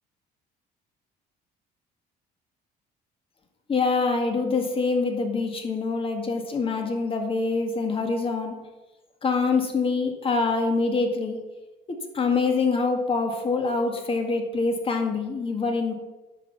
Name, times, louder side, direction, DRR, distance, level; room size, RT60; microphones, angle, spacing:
voice 1, 3.7-8.5 9.2-11.4 12.1-15.9, left 4 dB, 35° left, 4 dB, 1.9 m, -25 dB
9.9 x 5.9 x 7.0 m, 1.1 s
cardioid pair, 110°, 17 cm